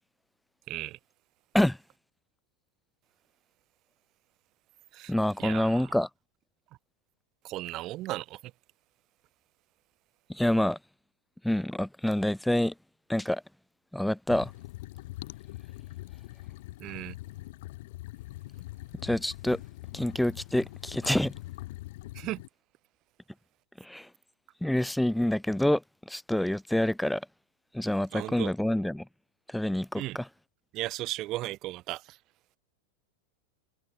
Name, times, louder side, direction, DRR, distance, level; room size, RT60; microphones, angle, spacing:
voice 1, 0.7-1.0 4.9-5.1 5.4-6.0 7.4-8.4 16.8-17.1 22.1-22.4 28.1-28.5 30.0-30.2 30.7-32.2, right 16 dB, 35° right, 2.5 m, -36 dB
voice 2, 5.1-6.1 10.3-10.8 11.4-12.7 13.1-13.4 13.9-14.5 19.0-19.6 19.9-21.3 23.8-24.1 24.6-25.8 26.1-27.2 27.7-29.0 29.5-30.2, left 1 dB, ahead, 1.2 m, -27 dB
sound 1, 14.3-22.5, left 18 dB, 50° left, 6.4 m, -43 dB
figure-of-eight pair, 90°, 0 cm